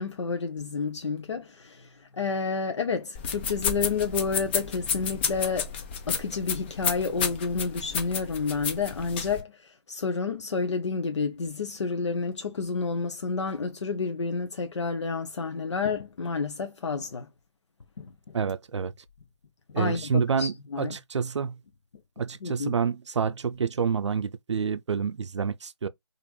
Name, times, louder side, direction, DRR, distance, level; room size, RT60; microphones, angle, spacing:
voice 1, 0.0-5.7 6.1-17.3 18.0-18.3 19.8-21.0 22.4-22.8, left 4 dB, 75° left, 0.6 m, -30 dB
sound 1, 3.1-9.4, left 7 dB, 25° left, 0.4 m, -31 dB
voice 2, 18.3-18.9 19.7-21.6 22.2-25.9, right 6 dB, 80° right, 0.4 m, -28 dB
3.1 x 2.5 x 2.3 m
figure-of-eight pair, 145°, 15 cm